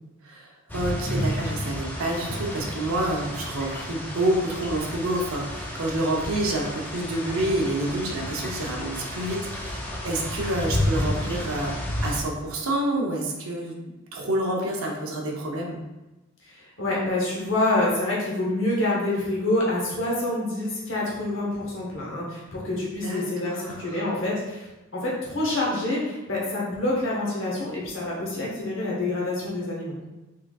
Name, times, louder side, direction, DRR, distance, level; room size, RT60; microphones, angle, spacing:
voice 1, 0.2-11.7 12.0-13.8 14.1-15.8 23.0-24.0, right 1 dB, 80° right, 0 dB, 0.6 m, -28 dB
sound 1, 0.7-12.2, left 1 dB, 10° left, 0.4 m, -31 dB
voice 2, 16.5-24.7 24.9-30.0, left 2 dB, 60° left, -4 dB, 0.9 m, -27 dB
3.7 x 3.2 x 2.3 m, 1.0 s
head